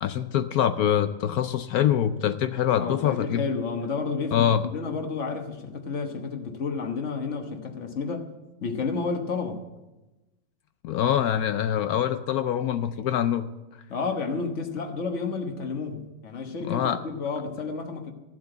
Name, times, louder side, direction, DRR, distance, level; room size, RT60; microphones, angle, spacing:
voice 1, 0.0-3.4 4.3-4.6 10.8-13.5 16.6-17.0, left 10 dB, 70° left, 11 dB, 0.9 m, -24 dB
voice 2, 2.8-8.3 8.6-9.6 13.9-18.1, left 4 dB, 45° left, 4 dB, 1.4 m, -31 dB
14.5 x 7.9 x 7.8 m, 1.1 s
omnidirectional pair, 2.0 m